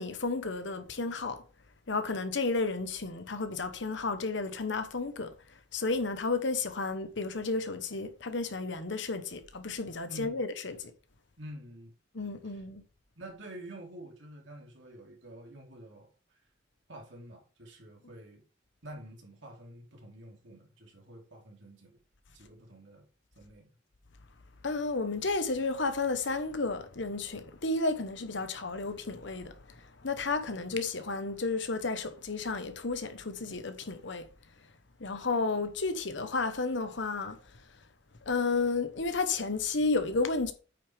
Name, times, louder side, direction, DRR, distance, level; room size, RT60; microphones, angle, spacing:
voice 1, 0.0-1.4 1.9-5.3 5.7-10.9 12.1-12.8 24.6-34.3 35.0-37.4 38.2-40.5, left 3 dB, 65° left, 1.1 m, -32 dB
voice 2, 10.1-10.4 11.4-11.9 12.5-12.6 13.2-16.1 16.9-18.4 18.8-22.0 22.3-23.0 23.4-23.7, right 1 dB, 70° right, 2.8 m, -48 dB
8.6 x 6.1 x 3.5 m
head